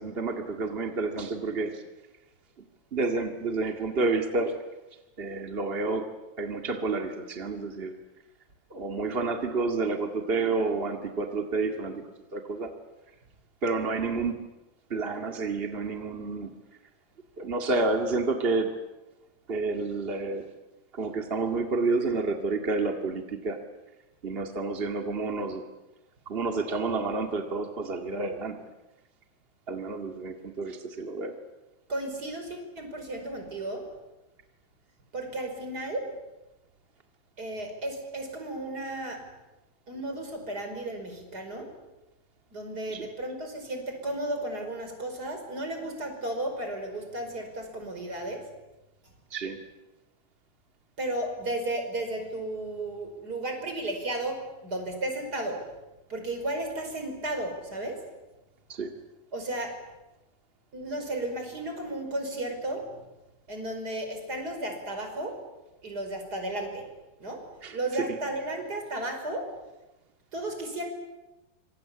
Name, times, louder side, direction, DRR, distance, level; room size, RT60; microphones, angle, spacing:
voice 1, 0.0-1.8 2.9-4.5 5.2-6.1 6.4-7.9 8.7-12.1 12.3-12.7 13.6-14.5 14.9-16.5 17.4-18.7 19.5-20.4 20.9-23.6 24.2-25.6 26.2-28.6 29.7-31.3 42.9-43.0 49.3-49.6 58.7-58.9 67.6-67.8 68.1-68.2, right 3 dB, 40° right, 4 dB, 0.8 m, -29 dB
voice 2, 31.9-33.9 35.1-36.1 37.4-39.3 39.9-41.7 42.5-48.5 51.0-55.6 56.1-58.0 59.3-59.8 60.7-63.0 63.5-65.4 65.8-66.9 67.2-67.5 67.7-69.5 70.3-70.9, right 1 dB, 25° right, 4 dB, 5.4 m, -34 dB
26.0 x 25.5 x 8.6 m, 1.0 s
omnidirectional pair, 4.6 m